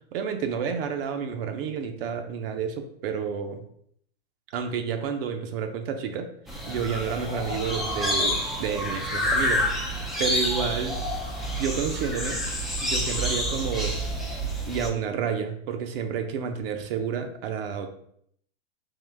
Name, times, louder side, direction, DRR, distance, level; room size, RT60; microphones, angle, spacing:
voice 1, 0.1-3.6 4.5-6.3 6.7-9.8 10.2-10.9 11.6-12.4 12.8-14.0 14.7-17.9, right 6 dB, 60° right, 6 dB, 0.7 m, -30 dB
sound 1, 6.5-14.9, equal, ahead, 0.3 m, -28 dB
3.8 x 2.6 x 3.2 m, 0.68 s
hypercardioid pair, 120°, 33 cm